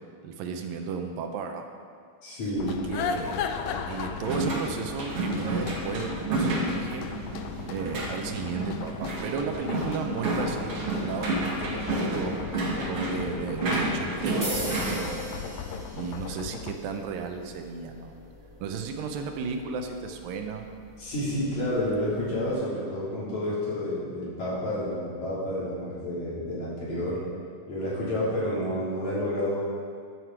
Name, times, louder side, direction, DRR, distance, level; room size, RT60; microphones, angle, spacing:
voice 1, 0.2-1.7 2.7-3.5 3.9-7.1 7.7-15.3 15.9-18.1 18.6-20.7, right 5 dB, 80° right, 5 dB, 2.6 m, -34 dB
voice 2, 2.2-2.8 21.0-27.2 27.7-29.6, left 1 dB, 55° left, -8 dB, 4.8 m, -30 dB
sound 1, 2.6-16.8, left 7 dB, 80° left, 1.7 m, -37 dB
sound 2, 4.2-15.0, right 2 dB, 50° right, 2.4 m, -30 dB
sound 3, 14.4-22.5, right 2 dB, 10° right, 2.4 m, -41 dB
14.0 x 9.7 x 4.7 m, 2.1 s
omnidirectional pair, 4.0 m